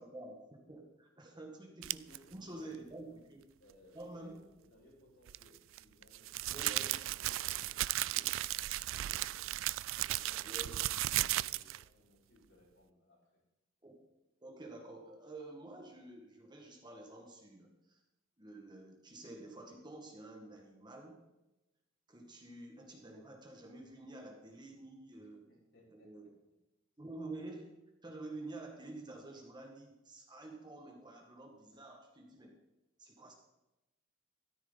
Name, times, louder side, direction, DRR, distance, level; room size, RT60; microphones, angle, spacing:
voice 1, 0.0-2.1 2.3-3.4 3.9-4.4 6.5-6.9 10.4-10.7 13.8-13.9 14.4-18.0 18.4-21.2 22.1-25.4 25.9-26.2 27.0-27.7 28.0-32.6 33.0-33.3, right 2 dB, 20° right, 2 dB, 1.9 m, -49 dB
sound 1, 1.8-2.2 5.3-11.8, right 15 dB, 70° right, 0.3 m, -35 dB
voice 2, 2.0-3.2 3.6-9.5 9.9-13.3 25.2-26.3, left 1 dB, 65° left, -5 dB, 5.3 m, -64 dB
13.5 x 13.0 x 4.1 m, 0.97 s
head